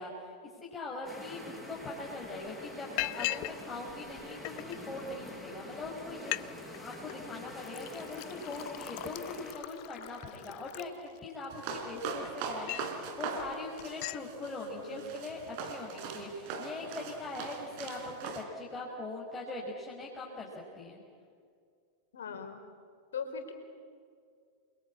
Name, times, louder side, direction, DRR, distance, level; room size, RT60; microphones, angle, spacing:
voice 1, 0.0-20.5 20.8-21.0, left 2 dB, 15° left, -4 dB, 5.2 m, -41 dB
sound 1, 1.1-9.5, left 1 dB, ahead, 6.9 m, -46 dB
Liquid, 1.8-1.9 2.2-2.5 3.0-3.6 3.9-4.8 5.4-5.5 5.8-5.9 6.2-6.5 6.7-7.2 7.6-11.4 12.0-13.0 13.4-13.5 13.8-14.2, left 22 dB, 45° left, 0.6 m, -39 dB
sound 2, 11.5-18.4, right 5 dB, 45° right, 4.1 m, -40 dB
voice 2, 14.8-15.1 22.1-22.6 23.1-23.5, left 6 dB, 65° left, 6 dB, 4.2 m, -40 dB
29.0 x 23.0 x 8.7 m, 2.2 s
figure-of-eight pair, 90°, 0 cm